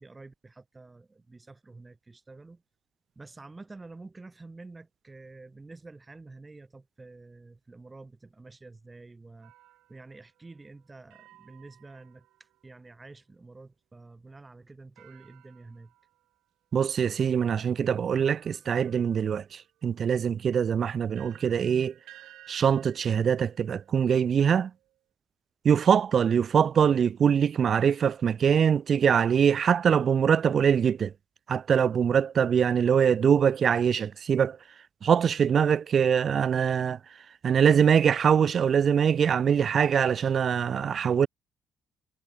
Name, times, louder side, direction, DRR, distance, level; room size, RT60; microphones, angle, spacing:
voice 1, 0.0-2.6 3.2-9.5 9.9-15.9, right 3 dB, 20° right, 6.9 m, -49 dB
sound 1, 9.4-12.9 15.0-16.4 17.2-17.3 18.1-25.0, right 15 dB, 90° right, 7.2 m, -58 dB
voice 2, 16.7-21.9 22.5-24.7 25.6-31.1 31.5-34.6 35.0-37.0 37.4-41.3, right 7 dB, 55° right, 0.4 m, -23 dB
cardioid pair, 90°, 0 cm